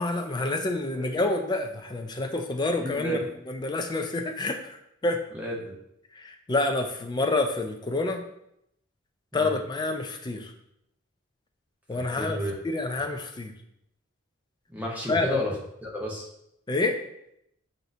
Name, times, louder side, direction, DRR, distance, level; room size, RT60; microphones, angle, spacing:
voice 1, 0.0-3.2 3.5-4.8 5.0-5.2 6.2-8.2 9.3-10.5 11.9-12.4 12.6-13.5 15.1-15.4 16.7-17.0, left 2 dB, 20° left, 5 dB, 0.3 m, -28 dB
voice 2, 2.8-3.2 5.3-5.8 9.3-9.5 11.9-12.5 14.7-15.5 15.8-16.3, equal, 5° right, -2 dB, 0.7 m, -32 dB
6.0 x 2.6 x 2.6 m, 0.78 s
head